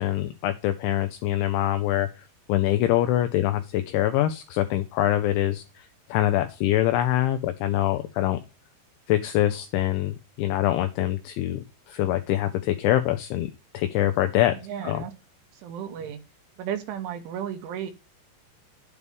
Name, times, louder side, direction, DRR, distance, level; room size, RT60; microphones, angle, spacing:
voice 1, 0.0-2.1 2.5-8.4 9.1-14.6 14.8-15.0, left 13 dB, 85° left, 9 dB, 2.6 m, -24 dB
voice 2, 14.5-15.1 15.5-16.2 16.6-17.9, right 9 dB, 80° right, 8 dB, 3.0 m, -34 dB
11.0 x 8.2 x 3.5 m, 0.31 s
omnidirectional pair, 6.0 m